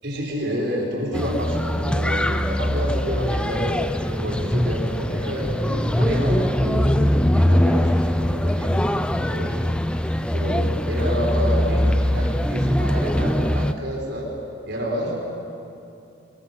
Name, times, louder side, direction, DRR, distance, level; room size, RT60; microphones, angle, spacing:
voice 1, 0.0-8.9 9.2-14.3 14.7-15.2, equal, 55° right, -1 dB, 5.8 m, -29 dB
sound 1, 1.1-13.7, equal, 5° left, 0.5 m, -22 dB
23.5 x 21.0 x 7.9 m, 2.7 s
head